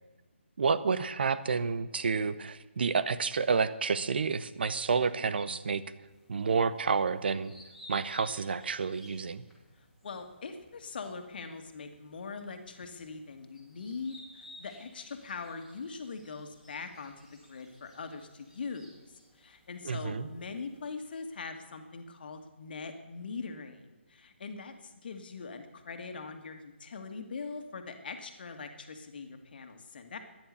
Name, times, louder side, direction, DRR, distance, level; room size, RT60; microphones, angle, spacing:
voice 1, 0.6-5.8 6.3-7.5 7.9-9.4 19.8-20.3, right 5 dB, 55° right, 15 dB, 0.9 m, -29 dB
sound 1, 6.0-21.3, left 1 dB, 5° right, 2.7 m, -57 dB
voice 2, 9.8-17.1 17.5-18.9 19.3-30.2, left 4 dB, 50° left, 6 dB, 1.9 m, -42 dB
14.0 x 10.5 x 6.9 m, 1.2 s
figure-of-eight pair, 150°, 7 cm